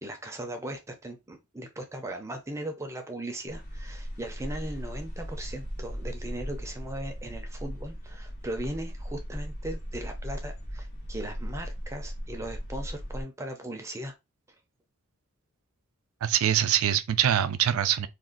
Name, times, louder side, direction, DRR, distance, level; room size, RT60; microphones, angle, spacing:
voice 1, 0.0-14.1, right 1 dB, 15° right, 0.5 m, -38 dB
sound 1, 3.5-13.2, equal, 50° left, 0.8 m, -37 dB
voice 2, 16.2-18.1, right 10 dB, 70° right, 0.4 m, -24 dB
2.5 x 2.3 x 3.7 m
head